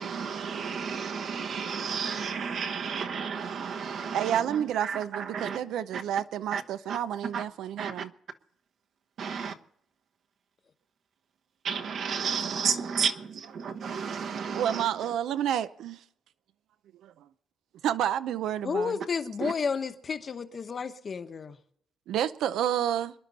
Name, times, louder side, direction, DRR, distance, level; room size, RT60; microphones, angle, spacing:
voice 1, 0.0-5.6 5.9-6.0 6.5-6.6 6.9-7.0 7.3-7.4 7.8-8.0 9.2-9.5 11.6-15.1 19.4-19.5, right 6 dB, 50° right, 1.1 m, -32 dB
voice 2, 4.1-8.1 13.7-13.8 14.5-16.0 17.0-17.1 17.8-18.9 22.1-23.1, right 10 dB, 75° right, 0.5 m, -29 dB
voice 3, 18.6-21.6, left 5 dB, 30° left, 1.0 m, -31 dB
26.0 x 11.0 x 4.1 m
cardioid pair, 170°, 0 cm